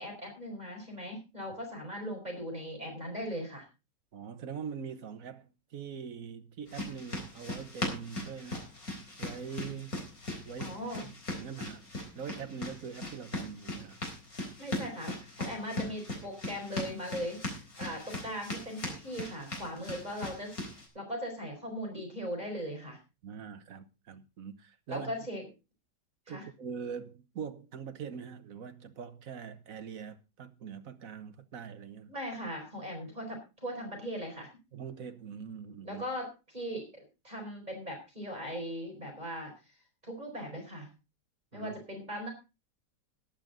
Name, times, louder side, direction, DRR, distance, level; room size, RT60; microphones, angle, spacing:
voice 1, 0.0-3.6 10.6-11.1 14.6-20.6 20.9-23.0 24.9-25.4 26.3-26.5 32.1-34.5 35.8-39.5 40.0-40.9 41.5-42.3, equal, 20° right, 4.4 m, -39 dB
voice 2, 4.1-8.7 9.2-10.0 10.4-11.9 12.1-14.0 23.2-25.1 26.3-32.1 34.7-36.0 41.5-41.8, right 6 dB, 55° right, 1.5 m, -43 dB
sound 1, 6.7-20.9, left 1 dB, 55° left, 4.6 m, -40 dB
14.5 x 11.0 x 3.9 m
omnidirectional pair, 1.9 m